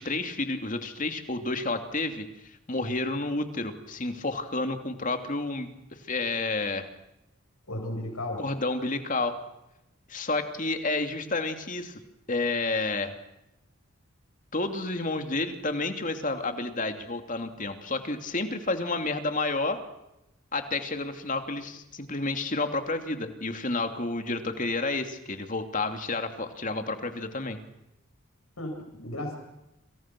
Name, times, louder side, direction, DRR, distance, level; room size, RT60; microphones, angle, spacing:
voice 1, 0.0-6.9 8.4-9.4 10.1-12.0 12.3-13.1 14.5-19.8 20.5-27.6, left 2 dB, 35° left, 6 dB, 2.8 m, -30 dB
voice 2, 7.7-8.5 28.6-29.4, left 1 dB, 85° left, 3 dB, 7.8 m, -34 dB
29.5 x 27.5 x 6.2 m, 0.91 s
head